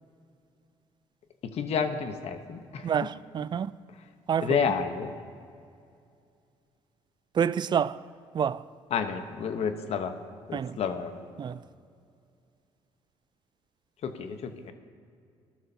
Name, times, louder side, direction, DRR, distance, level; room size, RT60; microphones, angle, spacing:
voice 1, 1.4-2.9 3.9-4.0 4.4-5.1 8.9-10.2 10.5-11.1 14.0-14.7, left 6 dB, 65° left, 1.0 m, -30 dB
voice 2, 2.8-3.7 4.3-4.6 7.4-8.0 8.3-8.6 10.5-10.8 11.4-11.6, right 8 dB, 40° right, 0.4 m, -27 dB
18.5 x 12.5 x 2.8 m
supercardioid pair, 70°, 12 cm